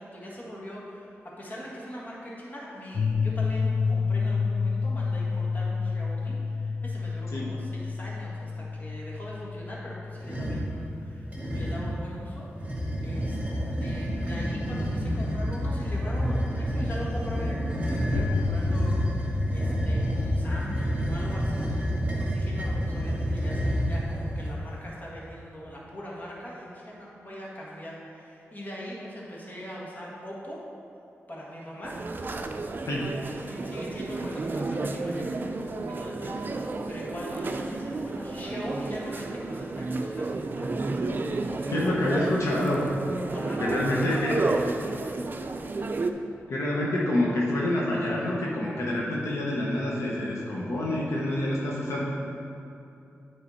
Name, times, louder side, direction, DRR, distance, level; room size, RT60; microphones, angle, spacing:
voice 1, 0.0-13.4 13.8-21.9 22.2-30.7 31.3-32.0 33.4-42.2 43.3-45.2, equal, 35° left, -5 dB, 1.8 m, -41 dB
sound 1, 2.9-12.3 13.2-13.3 18.1-22.0, left 5 dB, 55° left, 0.4 m, -30 dB
sound 2, 10.2-10.7 11.3-11.9 12.5-24.5, equal, 25° right, 1.8 m, -29 dB
sound 3, 31.8-46.1, right 3 dB, 40° right, 0.5 m, -32 dB
voice 2, 41.7-42.8 43.6-44.4 46.5-52.1, left 1 dB, 80° left, -5 dB, 1.2 m, -27 dB
9.0 x 5.0 x 4.2 m, 2.8 s
wide cardioid pair, 80°, 5 cm